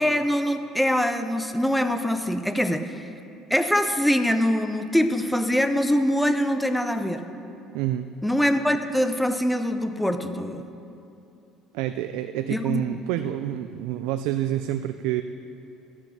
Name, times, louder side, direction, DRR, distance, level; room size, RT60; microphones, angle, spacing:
voice 1, 0.0-2.9 3.5-7.2 8.2-10.7 12.5-12.8, equal, 5° left, 8 dB, 0.5 m, -23 dB
voice 2, 7.7-8.1 11.7-15.2, right 12 dB, 85° right, 9 dB, 0.3 m, -28 dB
12.0 x 6.6 x 5.8 m, 2.7 s
cardioid pair, 125°, 0 cm